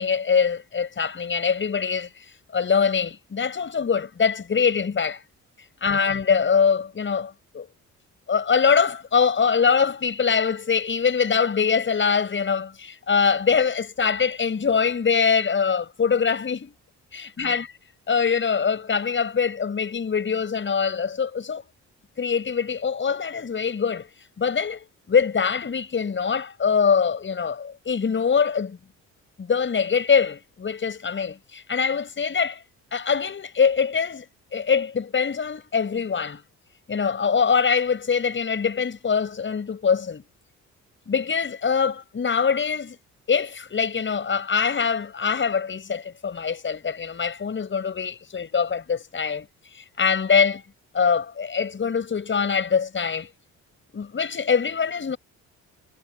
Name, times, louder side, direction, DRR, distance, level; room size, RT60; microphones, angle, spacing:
voice 1, 0.0-2.1 2.5-5.2 5.8-7.7 8.3-16.7 17.1-17.7 18.1-21.6 22.2-24.1 24.4-28.8 29.4-32.6 32.9-34.3 34.5-36.4 36.9-40.2 41.1-43.0 43.3-49.5 49.7-50.6 50.9-53.3 53.9-55.2, left 6 dB, 40° left, 7.0 m, -23 dB
cardioid pair, 90°, 30 cm